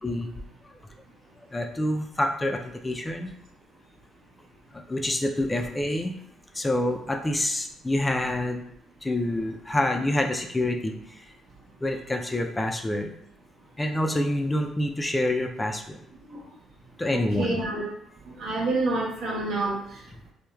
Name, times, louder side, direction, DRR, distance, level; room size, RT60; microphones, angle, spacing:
voice 1, 0.0-0.3 0.6-0.7 1.5-3.3 4.7-6.2 6.5-8.6 9.0-11.3 11.8-13.1 13.8-16.0 17.0-17.6, left 1 dB, 20° left, 3 dB, 0.3 m, -27 dB
voice 2, 17.1-17.8 18.3-20.0, right 2 dB, 65° right, -4 dB, 0.9 m, -28 dB
3.0 x 2.0 x 2.2 m, 0.71 s
supercardioid pair, 70°, 0 cm